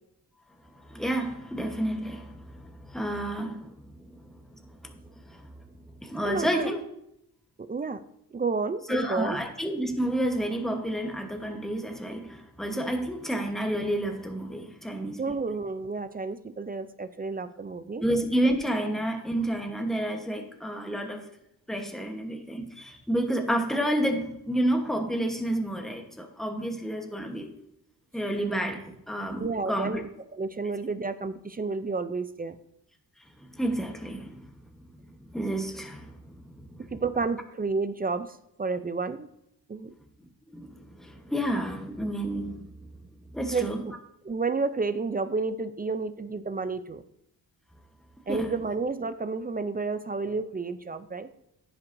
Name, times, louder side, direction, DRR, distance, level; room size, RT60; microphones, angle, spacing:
voice 1, 0.8-3.8 4.1-4.2 4.5-4.9 5.3-5.5 6.0-6.8 8.9-15.3 18.0-21.2 21.7-27.6 28.1-30.0 33.4-34.4 35.3-36.4 36.7-36.9 40.5-42.7 43.3-43.8 48.3-48.5, right 1 dB, ahead, 1.1 m, -30 dB
voice 2, 6.2-6.7 7.6-8.0 8.3-9.4 15.2-18.0 29.4-30.1 30.3-32.6 36.9-39.3 39.7-39.9 43.5-43.9 44.2-47.0 48.3-51.3, right 4 dB, 25° right, 0.4 m, -31 dB
15.0 x 5.7 x 2.6 m
wide cardioid pair, 120°, 38 cm